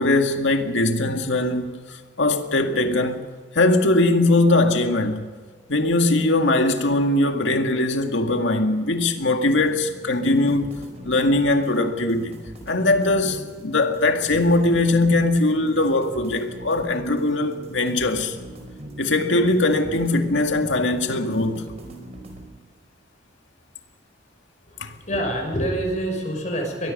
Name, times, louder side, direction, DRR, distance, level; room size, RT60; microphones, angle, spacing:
voice 1, 0.0-3.2 3.5-5.3 5.7-10.8 11.0-12.4 12.7-18.4 19.0-21.6 24.8-24.9, left 2 dB, 75° left, 2.0 m, -21 dB
sound 1, 9.6-22.5, right 1 dB, 35° right, 4.7 m, -40 dB
voice 2, 24.8-26.9, right 1 dB, 40° left, 6.1 m, -26 dB
23.5 x 21.5 x 5.4 m
head